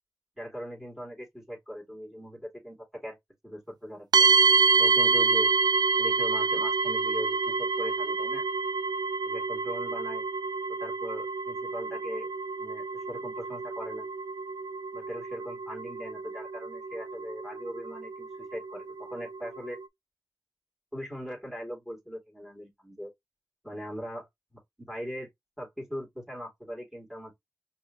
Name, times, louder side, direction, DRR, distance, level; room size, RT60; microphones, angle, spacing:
voice 1, 0.4-3.2 3.4-4.3 4.8-5.5 6.0-8.4 9.3-10.2 10.8-12.3 12.6-14.1 14.9-19.8 20.9-23.1 23.6-24.6 24.9-25.3 25.6-27.3, equal, 5° right, 2.9 m, -40 dB
sound 1, 4.1-19.8, right 4 dB, 75° right, 0.3 m, -28 dB
5.3 x 3.0 x 2.7 m
wide cardioid pair, 60°, 7 cm